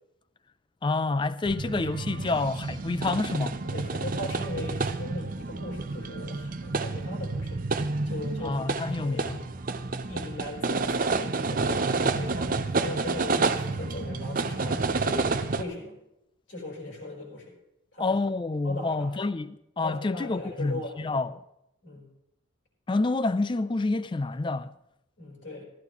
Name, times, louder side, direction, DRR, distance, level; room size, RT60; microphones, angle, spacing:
voice 1, 0.8-3.6 8.4-9.4 18.0-21.3 22.9-24.7, left 3 dB, 25° left, 0.3 m, -28 dB
sound 1, 1.4-15.6, right 3 dB, 40° right, 0.6 m, -29 dB
voice 2, 3.6-7.6 8.0-8.7 8.9-9.4 10.1-16.0 16.5-17.5 17.9-18.2 18.6-19.1 19.8-21.2 21.8-22.1 25.2-25.6, left 1 dB, 60° left, 4.1 m, -38 dB
15.5 x 14.0 x 3.0 m
head